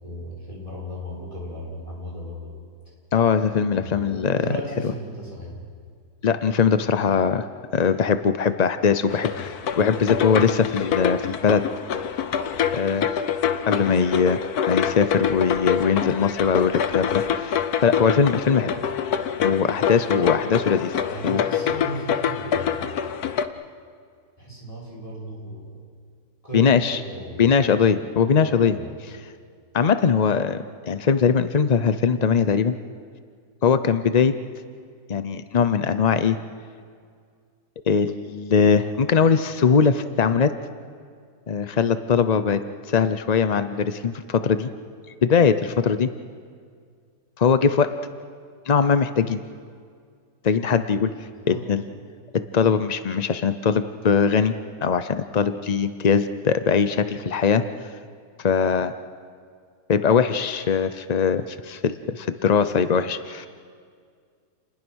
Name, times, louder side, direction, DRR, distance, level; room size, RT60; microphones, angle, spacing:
voice 1, 0.0-2.5 3.8-5.6 21.0-22.9 24.4-25.8 26.4-27.5 28.4-28.9 51.2-51.7, right 1 dB, 20° left, -4 dB, 6.5 m, -36 dB
voice 2, 3.1-4.5 6.2-7.5 7.7-11.6 12.7-13.2 13.7-18.8 19.4-21.0 21.2-21.4 26.5-27.0 27.4-28.8 29.7-30.6 30.9-32.7 33.6-34.3 35.1-36.4 37.9-40.5 41.5-42.6 42.9-44.7 45.2-46.1 47.4-47.9 48.7-49.4 50.4-51.1 51.5-51.8 52.3-54.5 54.8-57.6 58.4-58.9 59.9-63.5, left 6 dB, 55° left, 11 dB, 0.4 m, -21 dB
sound 1, 9.1-23.5, left 8 dB, 70° left, 1.4 m, -26 dB
29.5 x 20.5 x 6.3 m, 2.1 s
omnidirectional pair, 1.7 m